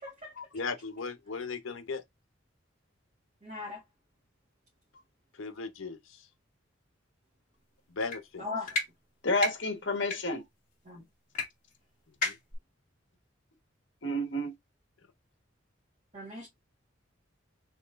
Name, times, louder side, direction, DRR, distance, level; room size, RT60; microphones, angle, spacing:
voice 1, 0.0-0.3 3.4-3.8 8.4-8.8 10.9-11.0 16.1-16.5, left 3 dB, 35° right, 1.9 m, -39 dB
voice 2, 0.5-2.0 5.3-6.2 7.9-8.4 12.2-12.4, left 4 dB, 85° left, 0.8 m, -37 dB
sound 1, 8.0-8.2 8.7-8.9 9.3-9.5 10.0-10.2 11.3-11.4 11.7-11.8 12.2-12.5, left 2 dB, 40° left, 2.1 m, -31 dB
voice 3, 9.2-10.4 14.0-14.5, left 1 dB, 65° left, 1.4 m, -30 dB
4.2 x 3.7 x 2.5 m
head